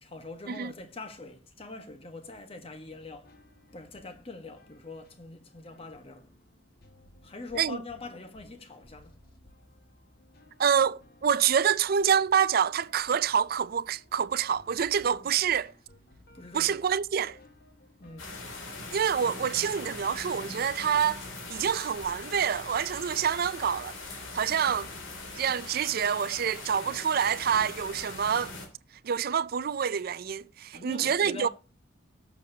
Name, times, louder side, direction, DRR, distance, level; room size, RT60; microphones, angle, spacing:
voice 1, 0.0-3.3 3.7-6.3 7.2-9.1 15.2-15.3 16.3-16.8 18.0-18.3 30.7-31.5, left 3 dB, 30° left, 1.3 m, -43 dB
sound 1, 2.9-21.2, left 1 dB, 50° left, 1.5 m, -59 dB
voice 2, 10.6-15.7 16.5-17.4 18.9-21.2 21.5-23.9 24.3-24.9 25.4-28.5 29.0-31.5, right 8 dB, 50° right, 0.4 m, -27 dB
sound 2, 18.2-28.7, left 3 dB, 80° left, 2.8 m, -41 dB
18.0 x 6.9 x 2.8 m
head